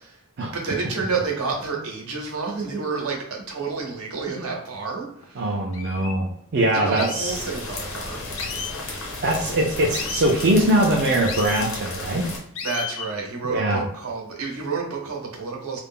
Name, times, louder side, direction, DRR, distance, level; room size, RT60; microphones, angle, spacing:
voice 1, 0.5-5.6 6.7-8.2 12.6-15.8, right 4 dB, 80° right, 0 dB, 0.8 m, -30 dB
sound 1, 5.2-5.3 5.7-6.1 7.0-7.4 8.4-8.8 9.9-10.3 11.3-11.7 12.6-13.1, left 6 dB, 60° left, 0.4 m, -33 dB
voice 2, 5.4-7.4 9.2-12.3 13.4-13.8, right 1 dB, 50° right, -1 dB, 0.4 m, -22 dB
sound 2, 7.2-12.4, left 2 dB, 85° left, 1.0 m, -33 dB
2.3 x 2.0 x 3.5 m, 0.72 s
head